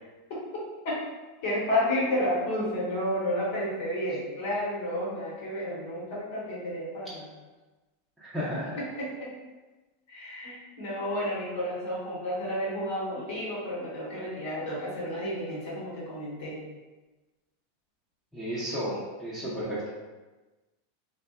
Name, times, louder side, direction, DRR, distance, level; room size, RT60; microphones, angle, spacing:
voice 1, 1.4-7.3 8.8-9.3 10.1-16.6 19.4-19.5, left 1 dB, 60° left, -7 dB, 0.9 m, -31 dB
voice 2, 8.2-8.8 18.3-19.9, equal, 5° right, -11 dB, 0.8 m, -33 dB
2.7 x 2.2 x 2.3 m, 1.2 s
hypercardioid pair, 95°, 0 cm